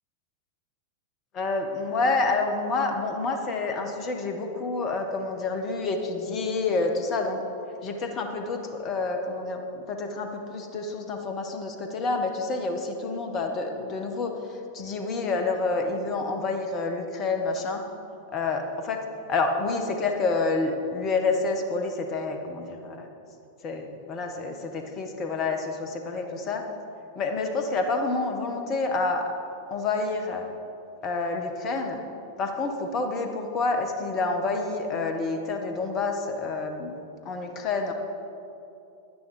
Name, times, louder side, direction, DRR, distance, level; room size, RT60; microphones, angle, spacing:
voice 1, 1.3-7.4 7.8-9.6 9.9-14.3 14.7-17.8 18.3-19.0 19.3-23.1 23.6-26.7 27.1-29.3 29.7-30.5 31.0-32.0 32.4-36.9 37.2-37.9, left 3 dB, 30° left, 5 dB, 1.3 m, -28 dB
11.0 x 10.0 x 5.0 m, 2.7 s
figure-of-eight pair, 90°, 0 cm